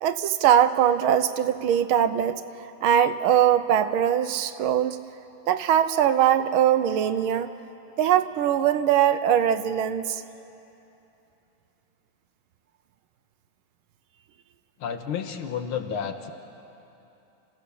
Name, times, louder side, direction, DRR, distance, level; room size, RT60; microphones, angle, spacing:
voice 1, 0.0-2.4 2.8-5.0 5.5-7.5 8.0-10.2, right 10 dB, 80° right, 11 dB, 1.5 m, -21 dB
voice 2, 14.8-16.3, left 7 dB, 75° left, 6 dB, 2.0 m, -31 dB
29.0 x 15.0 x 6.9 m, 2.8 s
omnidirectional pair, 2.4 m